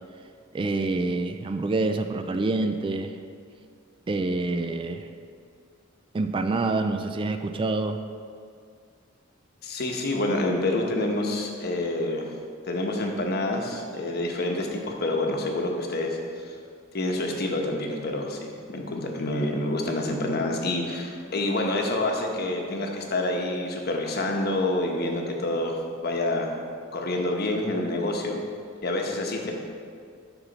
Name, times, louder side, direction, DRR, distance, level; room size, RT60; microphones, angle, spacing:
voice 1, 0.5-3.2 4.1-5.1 6.1-8.0, right 3 dB, 25° right, 8 dB, 0.3 m, -27 dB
voice 2, 9.6-12.3 12.6-16.5 16.9-26.6 26.9-28.4 28.8-29.5, left 2 dB, 55° left, 1 dB, 1.0 m, -27 dB
12.5 x 4.3 x 4.0 m, 2.2 s
head